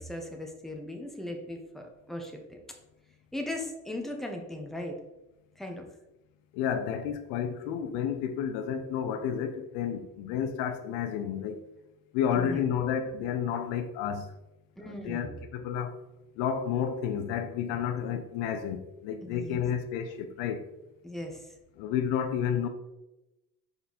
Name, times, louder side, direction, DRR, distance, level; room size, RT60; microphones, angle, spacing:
voice 1, 0.0-2.6 3.3-5.0 5.6-5.9 12.3-12.7 14.8-15.4 19.2-19.6 21.0-21.5, left 1 dB, ahead, 1.2 m, -38 dB
voice 2, 6.5-11.6 12.1-14.3 14.8-15.9 16.4-20.7 21.8-22.7, left 8 dB, 90° left, 0.7 m, -31 dB
5.3 x 4.5 x 4.1 m
supercardioid pair, 90°, 32 cm